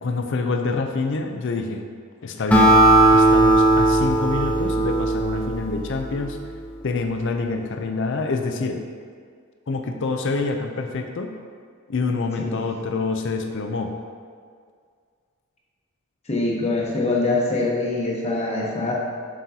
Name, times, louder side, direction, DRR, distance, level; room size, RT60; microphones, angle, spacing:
voice 1, 0.0-1.8 2.2-2.7 3.1-6.4 6.8-8.8 9.7-11.3 11.9-13.9, left 3 dB, 55° left, 4 dB, 0.5 m, -26 dB
Acoustic guitar, 2.5-6.1, right 2 dB, 5° left, 0.7 m, -17 dB
voice 2, 16.3-18.9, left 2 dB, 30° left, -3 dB, 1.0 m, -24 dB
7.5 x 6.2 x 2.8 m, 2.1 s
head